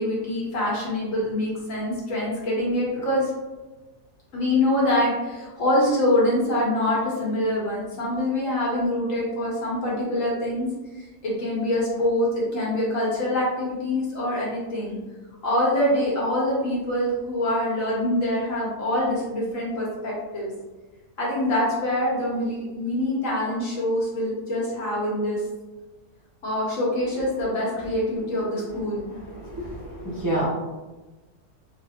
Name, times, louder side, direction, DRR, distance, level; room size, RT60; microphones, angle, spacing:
voice 1, 0.0-3.3 4.3-10.7 11.2-15.0 15.4-20.5 21.2-25.4 26.4-29.0, left 1 dB, 55° left, -5 dB, 1.4 m, -25 dB
voice 2, 29.4-30.5, right 1 dB, 30° right, -7 dB, 0.3 m, -28 dB
3.9 x 2.6 x 2.8 m, 1.2 s
omnidirectional pair, 1.7 m